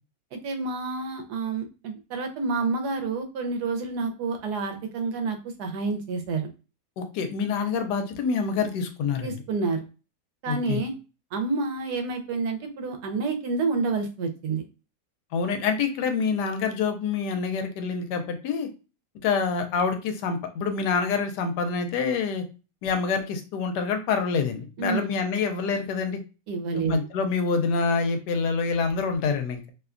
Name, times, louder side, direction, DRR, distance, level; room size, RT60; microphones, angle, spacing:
voice 1, 0.3-6.5 9.2-9.8 10.4-10.9 11.3-14.6 24.8-25.1 26.5-27.0, right 4 dB, 75° right, 4 dB, 1.1 m, -29 dB
voice 2, 7.0-9.4 10.5-10.8 15.3-18.7 19.2-22.4 22.8-26.2 26.7-29.7, left 5 dB, 85° left, 6 dB, 1.2 m, -26 dB
3.0 x 2.1 x 2.4 m, 0.32 s
omnidirectional pair, 1.8 m